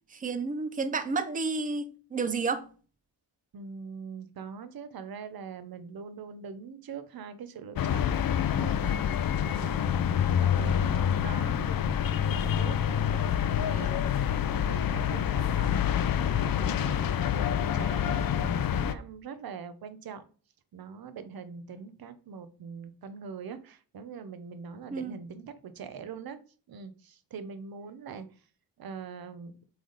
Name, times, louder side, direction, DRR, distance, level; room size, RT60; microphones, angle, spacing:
voice 1, 0.1-2.6 24.9-25.2, right 4 dB, 20° right, 0.5 m, -31 dB
voice 2, 3.5-9.0 9.6-11.7 12.2-13.9 14.5-20.2 20.7-26.4 26.7-28.3 28.8-29.5, right 6 dB, 55° right, 0.8 m, -43 dB
sound 1, 7.8-18.9, left 9 dB, 50° left, 0.5 m, -27 dB
7.9 x 3.4 x 3.9 m
wide cardioid pair, 160°, 44 cm